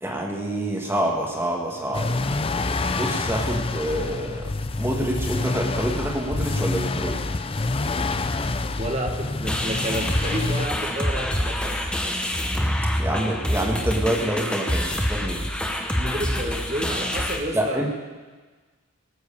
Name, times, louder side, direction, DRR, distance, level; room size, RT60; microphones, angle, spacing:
voice 1, 0.0-2.3 3.0-4.5 4.8-7.2 13.0-15.5 17.5-17.9, right 1 dB, 10° right, -1 dB, 1.6 m, -27 dB
sound 1, 1.9-10.7, left 3 dB, 25° left, 0.5 m, -27 dB
voice 2, 8.8-11.8 16.0-17.8, right 1 dB, 30° right, 3 dB, 1.6 m, -30 dB
sound 2, 9.4-17.4, equal, 5° left, 1.0 m, -26 dB
18.5 x 7.9 x 6.9 m, 1.3 s
head